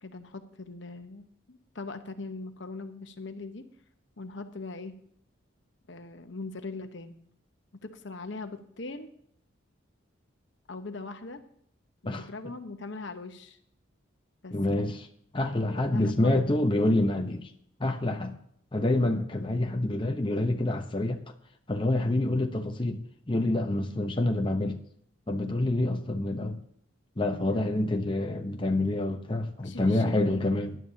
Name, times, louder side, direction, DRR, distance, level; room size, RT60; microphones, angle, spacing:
voice 1, 0.0-3.7 4.2-4.9 5.9-7.1 7.8-9.1 10.7-11.4 12.0-13.6 14.4-14.5 15.9-16.5 27.4-27.7 29.6-30.5, left 3 dB, 65° left, 8 dB, 1.1 m, -40 dB
voice 2, 14.5-15.1 15.3-17.5 17.8-18.3 18.7-21.2 21.7-23.0 23.3-24.8 25.3-26.6 27.2-30.7, left 1 dB, 25° left, 4 dB, 0.8 m, -27 dB
18.5 x 11.0 x 2.8 m, 0.68 s
head